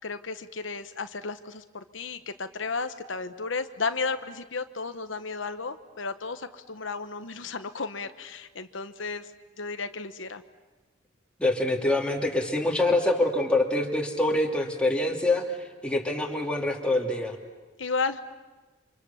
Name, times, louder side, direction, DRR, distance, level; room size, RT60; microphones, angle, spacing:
voice 1, 0.0-9.3 9.6-10.4 17.8-18.2, left 4 dB, 80° left, 9 dB, 1.1 m, -33 dB
voice 2, 11.4-15.4 15.8-17.4, left 2 dB, 5° left, 1 dB, 2.7 m, -25 dB
30.0 x 26.0 x 7.2 m, 1.2 s
head